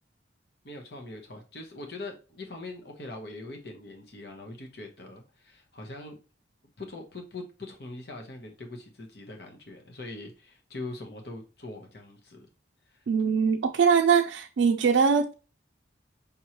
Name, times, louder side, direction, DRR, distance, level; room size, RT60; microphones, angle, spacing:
voice 1, 0.6-6.2 6.8-12.5 12.9-13.1, left 2 dB, 55° left, 1.0 m, -42 dB
voice 2, 13.1-15.3, right 6 dB, 80° right, 0.4 m, -22 dB
5.3 x 3.0 x 2.9 m
head